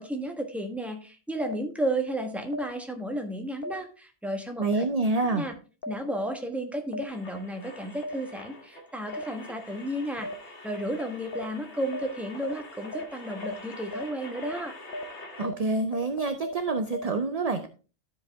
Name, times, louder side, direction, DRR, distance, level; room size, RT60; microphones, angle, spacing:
voice 1, 0.0-4.8 5.3-5.5 5.9-14.7, right 1 dB, ahead, 4 dB, 1.2 m, -33 dB
sound 1, 1.4-1.5 2.5-2.6 3.6-3.7 4.7-4.8 5.8-5.9 6.9-7.0 8.0-8.1 9.1-9.2 10.2-10.3 11.3-11.4 11.9-12.0 12.4-12.5 12.9-13.0 13.4-13.5 13.9-14.0 14.4-14.5 14.9-15.0 15.4-15.5 15.9-17.0, left 1 dB, 55° left, 1.1 m, -34 dB
voice 2, 4.6-5.4 15.4-17.7, right 3 dB, 40° right, 8 dB, 0.7 m, -27 dB
sound 2, 7.1-15.5, left 2 dB, 80° left, 2.0 m, -45 dB
13.0 x 5.0 x 3.5 m, 0.34 s
omnidirectional pair, 1.1 m